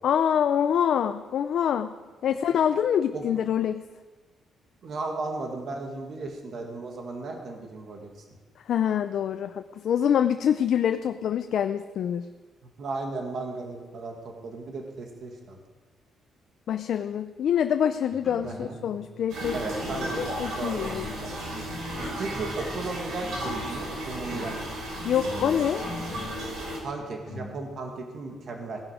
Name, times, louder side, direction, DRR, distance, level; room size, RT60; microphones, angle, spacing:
voice 1, 0.0-2.0 2.2-3.8 8.7-12.3 16.7-19.6 20.2-21.1 25.0-25.8, left 9 dB, 55° left, 8 dB, 0.5 m, -25 dB
voice 2, 4.8-8.1 12.8-15.6 18.4-18.8 19.5-21.4 22.2-24.6 26.8-28.8, right 3 dB, 45° right, 2 dB, 1.9 m, -35 dB
sound 1, 18.1-19.2 19.6-20.4 20.8-23.8 24.1-27.5, left 3 dB, 30° left, 3.3 m, -42 dB
sound 2, 19.3-26.8, right 1 dB, 70° right, 4.8 m, -34 dB
17.5 x 11.0 x 5.0 m, 1.3 s
cardioid pair, 160°, 0 cm